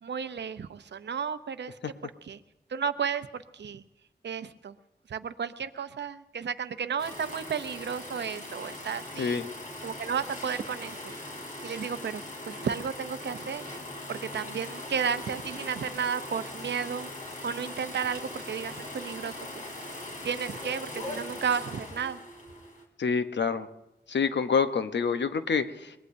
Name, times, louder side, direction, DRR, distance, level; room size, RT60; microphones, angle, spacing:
voice 1, 0.0-2.4 2.7-3.8 4.2-4.7 5.1-9.4 9.8-11.1 11.6-13.7 14.1-17.1 17.4-19.6 20.2-22.2, right 6 dB, 80° right, 10 dB, 0.6 m, -33 dB
sound 1, 7.0-22.8, left 1 dB, 45° left, 3.4 m, -40 dB
voice 2, 23.0-23.7 24.1-25.9, left 5 dB, 85° left, 10 dB, 0.9 m, -27 dB
23.0 x 19.0 x 2.7 m, 0.97 s
cardioid pair, 55°, 18 cm